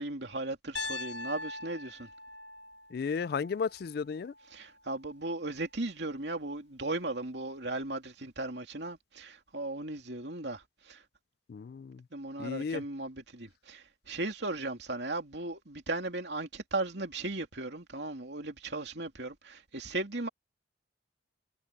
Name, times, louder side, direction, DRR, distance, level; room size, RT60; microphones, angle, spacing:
voice 1, 0.0-2.1 4.5-11.0 12.1-20.3, right 2 dB, 65° right, 2.9 m, -37 dB
Piano, 0.8-4.8, left 3 dB, 75° left, 1.7 m, -42 dB
voice 2, 2.9-4.3 11.5-12.0 12.4-12.8, left 5 dB, 55° left, 0.3 m, -34 dB
head